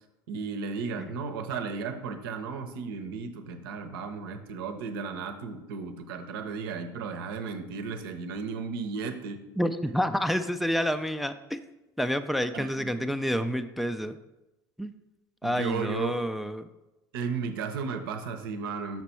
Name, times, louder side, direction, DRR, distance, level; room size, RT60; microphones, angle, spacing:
voice 1, 0.3-9.4 12.5-13.2 15.4-16.2 17.1-19.0, right 5 dB, 75° right, 7 dB, 0.8 m, -34 dB
voice 2, 9.6-11.6 12.0-14.2 14.8-14.9 15.4-16.7, equal, ahead, 10 dB, 0.4 m, -29 dB
5.9 x 5.9 x 4.4 m, 1.0 s
hypercardioid pair, 70°, 12 cm